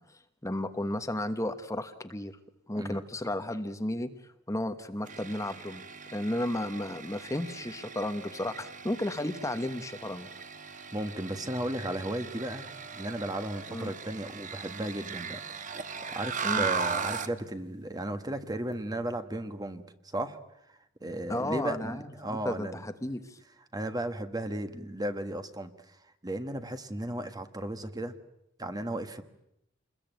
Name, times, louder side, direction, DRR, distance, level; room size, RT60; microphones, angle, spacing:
voice 1, 0.0-2.4 2.7-4.1 4.5-5.8 6.1-10.3 13.7-13.9 16.4-16.6 21.3-23.4, left 1 dB, 15° left, 8 dB, 1.2 m, -33 dB
sound 1, 5.1-17.4, right 5 dB, 40° right, 1.4 m, -38 dB
voice 2, 10.9-12.7 12.9-20.4 20.7-22.8 23.7-26.0 26.2-28.1 28.6-29.2, right 1 dB, 20° right, 9 dB, 1.4 m, -35 dB
27.5 x 21.5 x 9.2 m, 0.81 s
head